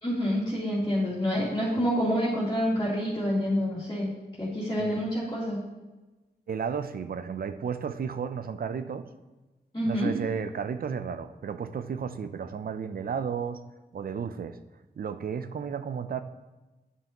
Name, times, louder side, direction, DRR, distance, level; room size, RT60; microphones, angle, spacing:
voice 1, 0.0-4.1 4.4-5.6 9.7-10.1, equal, 25° left, -10 dB, 2.3 m, -27 dB
voice 2, 6.5-9.0 9.9-13.6 13.9-14.6 15.0-16.2, right 6 dB, 60° right, 11 dB, 0.5 m, -33 dB
9.7 x 5.5 x 2.9 m, 1.1 s
wide cardioid pair, 85°, 17 cm